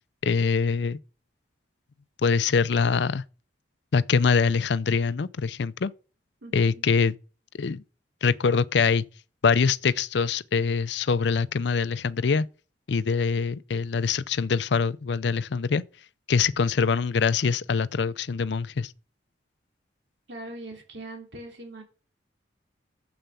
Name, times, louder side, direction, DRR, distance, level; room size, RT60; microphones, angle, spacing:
voice 1, 0.2-1.0 2.2-3.2 3.9-5.9 6.5-7.1 7.6-7.8 8.2-9.0 9.4-12.5 12.9-15.8 16.3-18.9, left 5 dB, 70° left, 0.5 m, -24 dB
voice 2, 6.4-7.0 20.3-21.8, right 2 dB, 75° right, 2.9 m, -41 dB
9.0 x 7.9 x 7.0 m
head